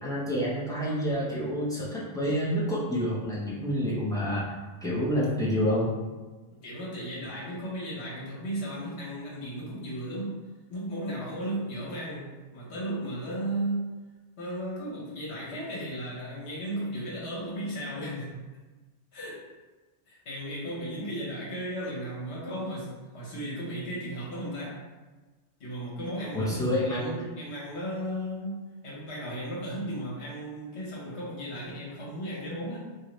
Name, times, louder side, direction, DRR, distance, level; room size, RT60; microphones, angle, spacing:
voice 1, 0.0-4.5 4.8-5.9 26.3-27.1, equal, 5° left, -8 dB, 0.5 m, -28 dB
voice 2, 6.6-10.4 10.7-13.9 14.4-18.4 19.1-19.4 20.1-24.8 25.6-32.8, right 1 dB, 65° left, -6 dB, 1.3 m, -35 dB
2.8 x 2.6 x 3.0 m, 1.3 s
omnidirectional pair, 1.2 m